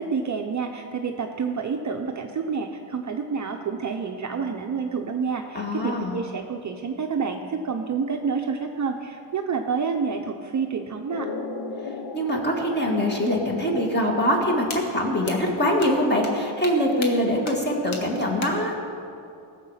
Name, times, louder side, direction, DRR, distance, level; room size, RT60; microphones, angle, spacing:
voice 1, 0.0-11.3, right 5 dB, 35° right, 3 dB, 0.7 m, -28 dB
voice 2, 5.5-6.2 12.1-18.7, equal, 20° left, 0 dB, 1.9 m, -23 dB
sound 1, 11.1-15.1, left 4 dB, 55° left, 0.9 m, -37 dB
sound 2, 14.7-14.8 15.3-15.4 15.8-15.9 16.2-16.3 16.6-16.7 17.0-17.1 17.5-17.6 17.9-18.0 18.4-18.5, left 4 dB, 75° left, 1.7 m, -34 dB
18.5 x 7.4 x 5.6 m, 2.6 s
wide cardioid pair, 155°, 49 cm